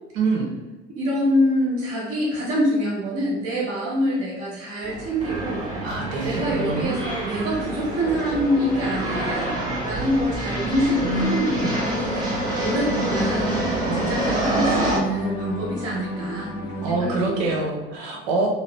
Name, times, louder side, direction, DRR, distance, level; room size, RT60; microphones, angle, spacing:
voice 1, 0.1-0.5 5.8-7.0 11.0-11.7 13.8-14.2 16.8-18.5, right 3 dB, 70° right, 1 dB, 0.9 m, -26 dB
voice 2, 1.0-5.6 6.2-9.5 9.8-12.2 12.6-13.6 13.9-17.6, equal, 55° right, -8 dB, 1.4 m, -25 dB
sound 1, 4.8-15.0, right 1 dB, 15° right, 1.4 m, -27 dB
sound 2, 8.0-17.7, left 2 dB, 65° left, 0.9 m, -35 dB
3.1 x 3.0 x 3.1 m, 1.2 s
hypercardioid pair, 60°, 31 cm